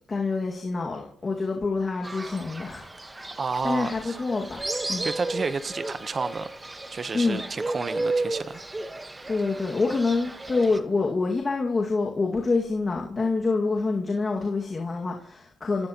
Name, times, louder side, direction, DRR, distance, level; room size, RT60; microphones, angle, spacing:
voice 1, 0.1-2.9 3.2-3.4 3.6-4.6 4.9-5.1 7.1-7.4 9.3-15.9, left 3 dB, 30° left, 2.0 m, -26 dB
Fowl, 2.0-10.8, right 2 dB, 15° right, 1.3 m, -34 dB
voice 2, 3.4-4.2 5.0-6.5 6.9-8.6, right 4 dB, 35° right, 0.9 m, -31 dB
27.0 x 16.5 x 3.0 m
cardioid pair, 90°, 0 cm